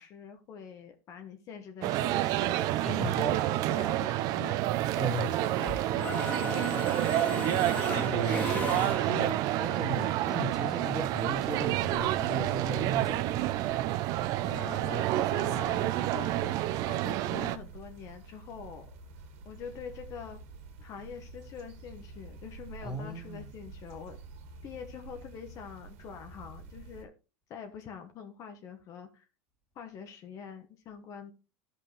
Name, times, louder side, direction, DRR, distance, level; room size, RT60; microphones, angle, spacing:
voice 1, 0.0-4.9 5.4-7.2 14.4-19.0 19.4-20.4 20.8-24.2 24.6-27.1 27.5-29.2 29.7-31.3, left 7 dB, 45° left, 1.2 m, -45 dB
sound 1, 1.8-17.6, right 15 dB, 55° right, 0.6 m, -29 dB
voice 2, 2.8-3.4 5.0-5.5 8.1-8.6 9.1-13.5 22.8-23.4, right 1 dB, 5° right, 2.2 m, -36 dB
Mechanisms, 4.7-5.6 5.9-9.5, left 2 dB, 20° left, 2.1 m, -36 dB
sound 2, 11.0-27.0, right 4 dB, 70° right, 1.8 m, -49 dB
11.5 x 5.6 x 3.3 m
supercardioid pair, 115°, 8 cm